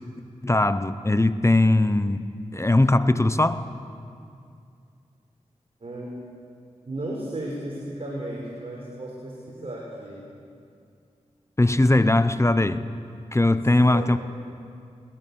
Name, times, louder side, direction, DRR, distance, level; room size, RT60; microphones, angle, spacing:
voice 1, 0.4-2.2 2.5-3.6 11.6-12.9 13.3-14.2, left 2 dB, 20° left, 12 dB, 0.9 m, -20 dB
voice 2, 5.8-6.2 6.8-10.2 13.9-14.0, right 1 dB, 50° right, -3 dB, 5.1 m, -34 dB
21.0 x 18.5 x 7.2 m, 2.4 s
cardioid pair, 40°, 13 cm